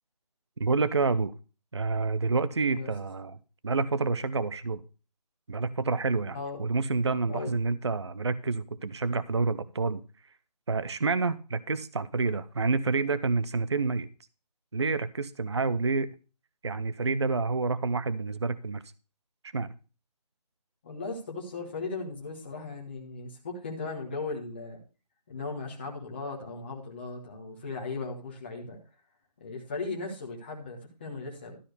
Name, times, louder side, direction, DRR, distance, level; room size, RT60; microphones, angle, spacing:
voice 1, 0.6-1.3 1.7-3.4 3.6-4.8 5.5-10.0 10.7-14.1 14.7-16.1 16.6-18.8 19.5-19.7, right 4 dB, 40° right, 16 dB, 0.5 m, -28 dB
voice 2, 6.3-6.6 7.2-7.6 20.8-24.8 25.3-28.8 29.4-31.6, left 3 dB, 15° left, -2 dB, 1.3 m, -37 dB
12.5 x 4.3 x 6.5 m, 0.34 s
figure-of-eight pair, 175°, 21 cm